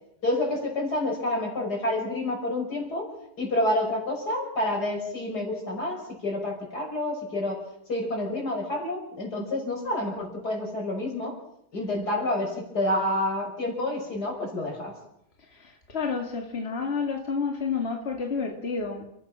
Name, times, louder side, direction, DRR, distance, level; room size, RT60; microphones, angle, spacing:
voice 1, 0.2-3.1 3.4-7.6 7.9-11.3 11.7-14.9, left 1 dB, 80° left, 1 dB, 6.4 m, -28 dB
voice 2, 15.5-19.0, left 5 dB, 40° left, 2 dB, 2.5 m, -30 dB
29.5 x 15.0 x 6.2 m, 0.79 s
omnidirectional pair, 1.7 m